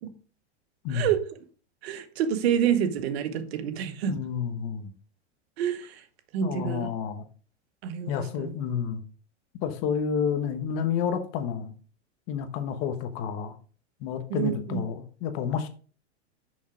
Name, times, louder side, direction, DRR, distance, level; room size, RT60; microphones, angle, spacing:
voice 1, 0.9-1.2 1.8-4.2 5.6-6.0 6.3-6.9 7.8-8.5 14.3-14.8, right 9 dB, 65° right, 1.0 m, -28 dB
voice 2, 4.1-4.9 6.4-7.2 8.1-9.0 9.6-11.7 12.3-13.5 14.0-15.7, left 7 dB, 45° left, 1.1 m, -30 dB
6.3 x 5.8 x 3.7 m
supercardioid pair, 135°, 34 cm